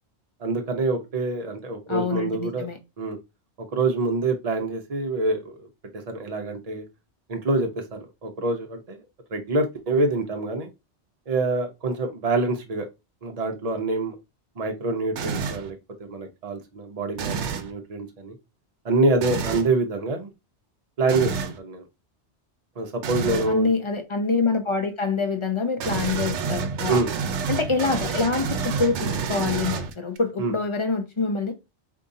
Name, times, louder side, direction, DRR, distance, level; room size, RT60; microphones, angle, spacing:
voice 1, 0.4-2.7 3.0-3.2 3.7-5.7 6.1-6.8 7.3-9.0 9.3-10.7 11.3-12.9 13.2-14.1 14.6-18.4 18.8-20.3 21.0-21.8 22.8-23.7 26.9-27.1 30.4-30.5, right 3 dB, 40° right, 0.8 m, -26 dB
voice 2, 1.9-2.8 23.5-27.0 27.5-31.5, left 4 dB, 30° left, 0.7 m, -26 dB
sound 1, 15.2-15.7 17.1-17.7 19.2-19.7 21.1-21.6 23.0-23.5 25.8-30.2, right 5 dB, 85° right, 0.9 m, -29 dB
5.1 x 2.8 x 2.6 m
omnidirectional pair, 1.2 m